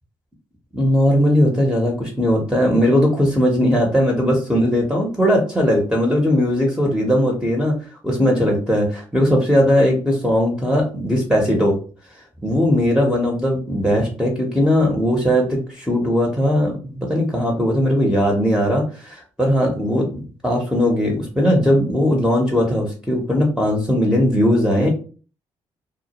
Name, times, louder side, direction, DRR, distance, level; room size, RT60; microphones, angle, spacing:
voice 1, 0.7-7.8 8.0-11.8 12.4-24.9, equal, 5° right, -1 dB, 0.8 m, -18 dB
2.1 x 2.1 x 2.9 m, 0.38 s
hypercardioid pair, 45°, 13 cm